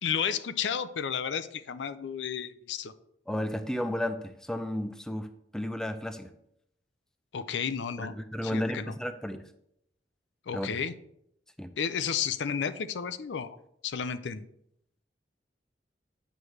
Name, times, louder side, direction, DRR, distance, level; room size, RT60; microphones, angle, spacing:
voice 1, 0.0-2.9 7.3-8.1 8.4-8.9 10.5-10.9 11.8-13.6 13.8-14.4, left 7 dB, 80° left, 12 dB, 0.5 m, -32 dB
voice 2, 3.3-6.3 8.0-9.4 10.5-10.7 11.6-11.7, left 1 dB, 5° left, 9 dB, 0.4 m, -33 dB
9.0 x 3.3 x 6.3 m, 0.75 s
head